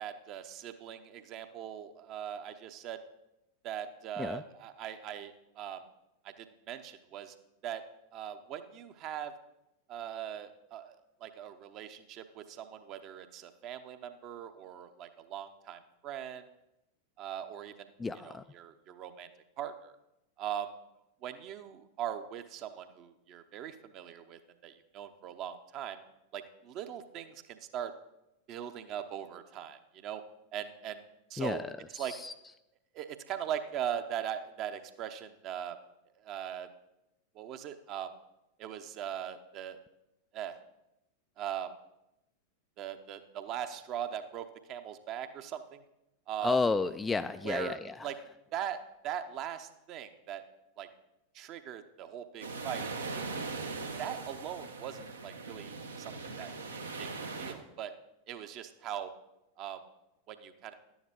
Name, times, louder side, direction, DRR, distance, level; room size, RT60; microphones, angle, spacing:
voice 1, 0.0-3.0 3.6-5.8 6.2-7.3 7.6-7.8 8.1-9.3 9.9-16.5 17.2-17.9 18.2-19.3 19.6-19.9 20.4-20.7 21.2-26.0 26.3-27.9 28.5-30.2 30.5-31.0 31.3-31.6 31.9-32.1 32.9-35.8 36.2-36.7 37.3-38.1 38.6-39.8 40.3-40.6 41.4-41.7 42.8-45.8 46.3-46.6 47.4-48.2 48.5-50.4 50.8-50.9 51.3-52.9 53.1-53.4 54.0-56.5 57.0-57.1 57.4-57.9 58.3-59.1 59.6-59.8 60.3-60.7, right 10 dB, 40° right, 8 dB, 0.8 m, -40 dB
voice 2, 18.0-18.4 31.4-32.3 46.4-48.1, left 4 dB, 10° left, 10 dB, 0.3 m, -32 dB
sound 1, 52.4-57.5, right 4 dB, 75° right, 1.1 m, -40 dB
11.5 x 9.6 x 3.7 m, 0.89 s
figure-of-eight pair, 90°, 0 cm